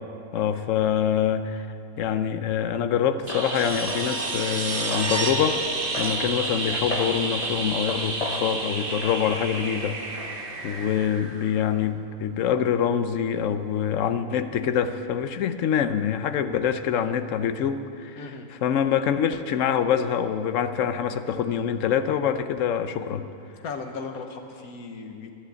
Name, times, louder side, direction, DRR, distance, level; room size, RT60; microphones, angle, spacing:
voice 1, 0.3-1.7 2.0-5.6 6.0-10.3 10.6-18.2 18.6-23.3, left 8 dB, 65° left, 10 dB, 1.0 m, -25 dB
sound 1, 3.3-11.1, left 3 dB, 35° left, 0.7 m, -37 dB
sound 2, 3.3-11.9 14.3-14.4, right 3 dB, 40° right, 1.1 m, -30 dB
voice 2, 18.2-18.5 23.6-25.3, left 4 dB, 80° left, 5 dB, 1.6 m, -36 dB
11.5 x 11.0 x 8.1 m, 2.6 s
omnidirectional pair, 1.6 m